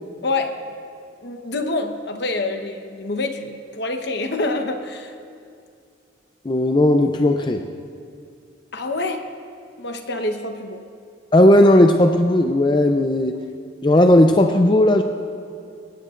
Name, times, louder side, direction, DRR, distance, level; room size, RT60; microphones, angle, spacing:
voice 1, 0.2-0.6 1.2-5.1 8.7-9.2 9.8-10.8, left 2 dB, 60° left, 6 dB, 1.1 m, -26 dB
voice 2, 6.4-7.7 11.3-13.4 13.8-15.0, left 1 dB, 25° left, 5 dB, 0.5 m, -15 dB
22.5 x 18.0 x 2.5 m, 2.4 s
head